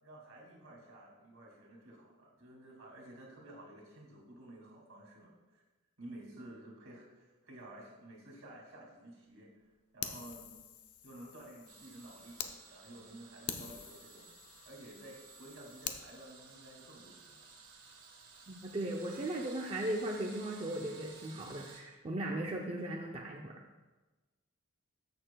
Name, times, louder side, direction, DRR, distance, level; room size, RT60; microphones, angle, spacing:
voice 1, 0.0-5.6 6.0-9.5 9.9-10.5 11.0-14.3 14.6-17.5, right 1 dB, 65° right, -2 dB, 2.3 m, -52 dB
Fire, 10.0-12.5 13.0-13.1 13.5-16.0, left 8 dB, 85° left, 0.6 m, -45 dB
sound 1, 11.7-21.8, right 5 dB, 85° right, 1.4 m, -56 dB
voice 2, 18.5-23.5, right 1 dB, 25° right, -1 dB, 0.5 m, -37 dB
14.0 x 6.6 x 2.3 m, 1.2 s
head